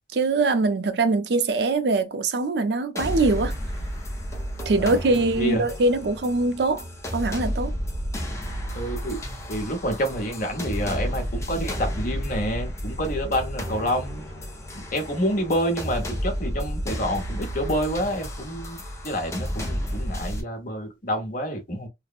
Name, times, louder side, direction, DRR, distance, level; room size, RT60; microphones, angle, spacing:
voice 1, 0.1-3.5 4.7-6.8 7.1-7.8, right 3 dB, 65° right, 0.5 m, -22 dB
sound 1, 3.0-20.4, equal, 15° left, 0.6 m, -32 dB
voice 2, 5.4-5.7 8.7-9.2 9.5-14.2 14.7-21.9, equal, 50° left, 0.9 m, -28 dB
3.0 x 2.0 x 2.4 m
head